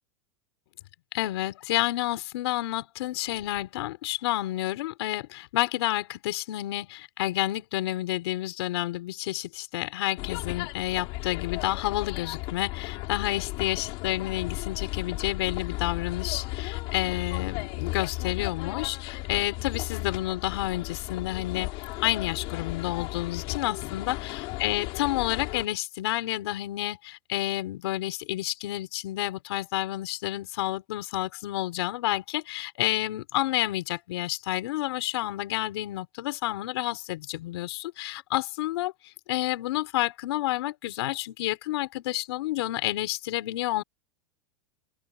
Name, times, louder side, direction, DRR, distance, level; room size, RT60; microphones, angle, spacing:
voice 1, 1.1-24.2 24.6-43.8, left 16 dB, 65° left, 5.1 m, -30 dB
sound 1, 10.2-25.7, left 22 dB, 40° left, 3.8 m, -35 dB
open air
supercardioid pair, 175°, 15 cm